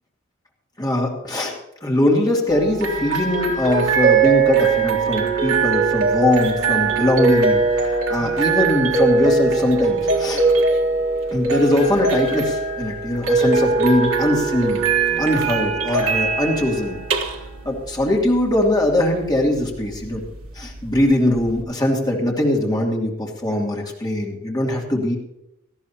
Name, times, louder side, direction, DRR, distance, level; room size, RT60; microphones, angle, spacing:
voice 1, 0.8-1.5 1.8-10.4 11.3-14.9 15.2-17.0 17.6-20.2 20.5-25.2, left 1 dB, 20° left, -2 dB, 2.8 m, -21 dB
sound 1, 2.5-21.6, right 4 dB, 65° right, 1.6 m, -21 dB
18.5 x 13.5 x 2.9 m, 0.83 s
head